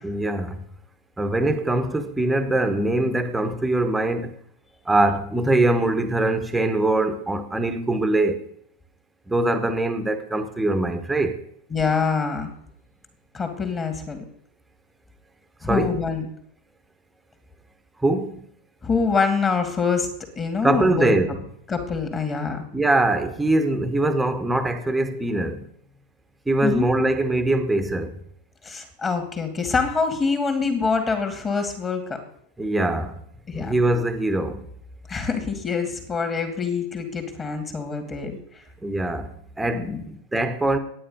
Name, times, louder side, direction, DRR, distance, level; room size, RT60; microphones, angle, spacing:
voice 1, 0.0-0.7 1.2-4.3 4.9-8.4 9.3-11.4 15.7-16.0 18.0-18.4 20.6-21.4 22.7-25.7 26.5-28.2 32.6-33.2 33.5-34.6 38.8-40.8, right 2 dB, 5° right, 1.3 m, -23 dB
voice 2, 11.7-12.5 13.3-14.2 15.6-16.3 18.8-20.1 20.4-21.1 21.7-22.6 26.6-26.8 28.6-32.2 33.5-33.7 35.1-38.4 39.7-40.0, left 5 dB, 20° left, 2.4 m, -25 dB
11.5 x 9.4 x 5.3 m
figure-of-eight pair, 90°, 0 cm